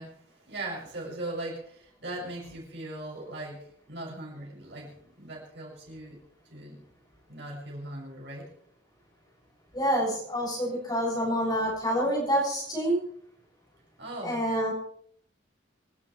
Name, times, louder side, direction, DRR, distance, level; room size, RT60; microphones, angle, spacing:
voice 1, 0.0-6.2 6.5-6.8 7.3-8.5 14.0-14.4, right 2 dB, 60° right, -2 dB, 7.0 m, -39 dB
voice 2, 9.7-13.0 14.2-14.7, equal, 20° left, -3 dB, 7.3 m, -27 dB
27.0 x 12.0 x 3.3 m, 0.64 s
head